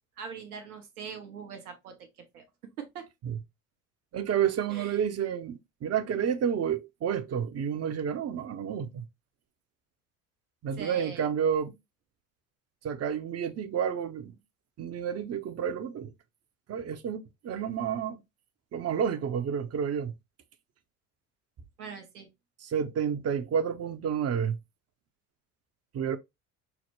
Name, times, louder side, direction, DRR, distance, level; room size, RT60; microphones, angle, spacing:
voice 1, 0.2-2.0 2.3-2.4 2.8-3.1 4.7-4.9 10.8-11.3 21.8-22.3, right 6 dB, 85° right, 1.0 m, -41 dB
voice 2, 4.1-9.1 10.6-11.8 12.8-14.4 14.8-16.1 16.7-18.2 18.7-20.1 22.6-24.6 25.9-26.2, right 8 dB, 35° right, 0.7 m, -30 dB
5.8 x 2.1 x 3.1 m
hypercardioid pair, 65°, 43 cm